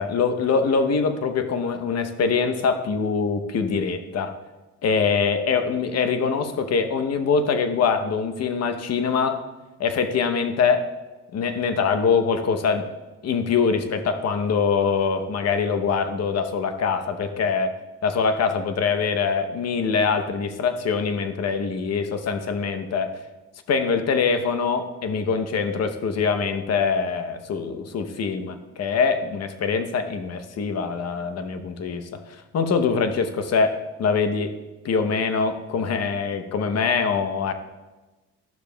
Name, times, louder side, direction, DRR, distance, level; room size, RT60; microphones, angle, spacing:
voice 1, 0.0-4.3 4.8-9.4 9.8-10.9 11.3-12.9 13.2-17.7 18.0-23.1 23.7-34.5 34.8-37.5, left 5 dB, 55° left, 9 dB, 0.8 m, -23 dB
12.0 x 6.8 x 2.2 m, 1.1 s
cardioid pair, 90°, 30 cm